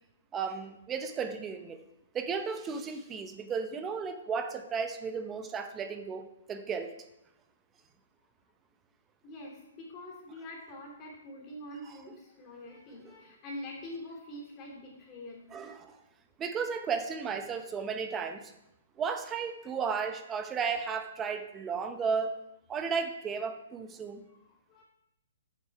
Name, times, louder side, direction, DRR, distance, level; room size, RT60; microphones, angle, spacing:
voice 1, 0.3-1.8 2.1-7.0 11.8-12.2 13.0-13.1 15.5-16.0 16.4-18.5 19.0-22.4 22.7-24.2, right 5 dB, 15° right, 8 dB, 0.7 m, -34 dB
voice 2, 9.2-15.5 24.3-24.8, left 1 dB, 25° left, -1 dB, 2.8 m, -45 dB
8.4 x 6.5 x 4.7 m, 0.85 s
hypercardioid pair, 145°, 0 cm